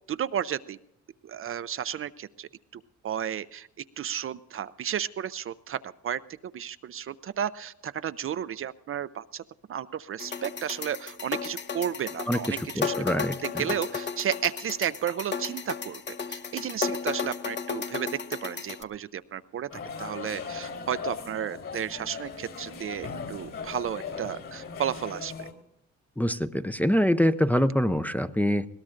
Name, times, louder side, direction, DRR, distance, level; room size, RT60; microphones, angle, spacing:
voice 1, 0.1-0.8 1.2-3.7 4.0-9.4 9.7-12.9 13.4-16.0 16.3-19.7 20.0-25.5, right 9 dB, 45° right, 13 dB, 0.5 m, -33 dB
sound 1, 10.2-18.8, left 6 dB, 35° left, 0.8 m, -34 dB
voice 2, 12.3-13.7 26.2-28.7, equal, 5° left, 10 dB, 0.5 m, -25 dB
sound 2, 19.7-25.5, left 5 dB, 55° left, 3.6 m, -38 dB
20.5 x 17.5 x 2.5 m, 0.78 s
cardioid pair, 90°, 30 cm